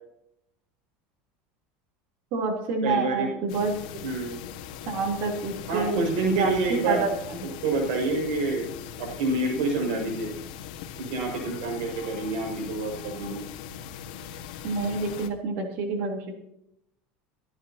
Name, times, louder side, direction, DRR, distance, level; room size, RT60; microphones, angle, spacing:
voice 1, 2.3-3.7 4.9-7.5 14.6-16.4, right 4 dB, 50° right, 1 dB, 3.7 m, -28 dB
voice 2, 2.8-3.3 4.0-4.4 5.7-7.1 7.6-8.7 9.0-10.3 11.1-13.4, right 2 dB, 80° right, 2 dB, 6.7 m, -27 dB
sound 1, 3.5-15.3, left 9 dB, 90° left, 1.8 m, -40 dB
24.5 x 11.0 x 3.0 m, 0.79 s
cardioid pair, 170°, 4 cm